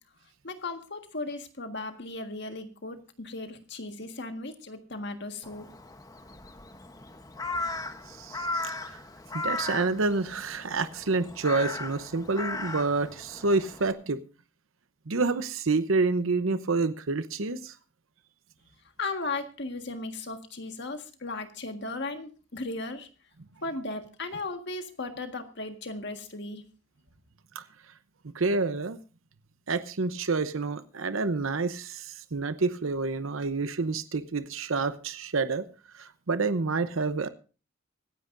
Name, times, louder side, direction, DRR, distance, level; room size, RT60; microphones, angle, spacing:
voice 1, 0.4-5.7 19.0-23.1 23.6-26.6, left 2 dB, 55° left, 6 dB, 1.6 m, -36 dB
Crow, 5.4-13.9, left 2 dB, 15° left, 0.9 m, -37 dB
voice 2, 8.1-9.0 9.3-14.2 15.1-17.7 27.5-27.6 28.3-29.0 29.7-35.6 35.9-37.3, right 3 dB, 75° right, 11 dB, 0.8 m, -28 dB
25.0 x 9.9 x 2.6 m, 0.35 s
head